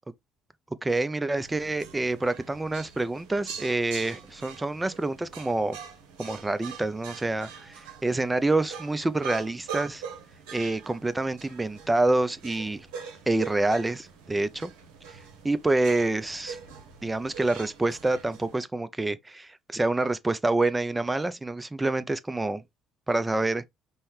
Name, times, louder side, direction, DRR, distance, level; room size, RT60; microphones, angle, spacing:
voice 1, 0.8-5.8 6.2-10.0 10.5-12.9 13.3-14.5 15.4-16.6 17.0-22.6 23.1-23.6, right 2 dB, 15° right, 0.4 m, -27 dB
sound 1, 1.4-18.6, right 7 dB, 75° right, 0.8 m, -43 dB
5.4 x 2.1 x 3.2 m
hypercardioid pair, 55°, 0 cm